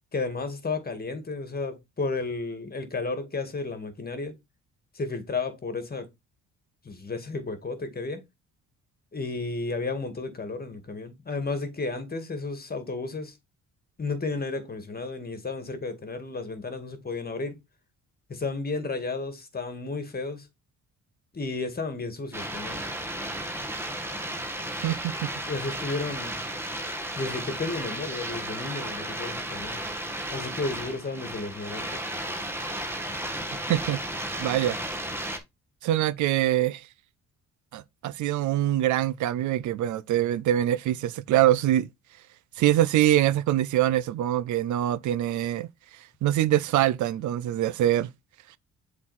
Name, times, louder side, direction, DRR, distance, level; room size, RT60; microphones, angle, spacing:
voice 1, 0.1-4.4 4.9-6.1 6.8-8.2 9.1-13.4 14.0-17.6 18.3-20.5 21.3-22.8 25.5-26.4 27.2-29.8 30.3-32.0, left 3 dB, 30° left, 2.1 m, -33 dB
sound 1, 22.3-35.4, right 1 dB, 10° right, 1.6 m, -34 dB
voice 2, 24.8-25.1 33.7-34.0 34.4-34.8 35.8-36.8 37.7-41.9 42.6-45.7 46.2-48.1, right 13 dB, 75° right, 0.6 m, -24 dB
7.4 x 4.1 x 4.2 m
cardioid pair, 90°, 30 cm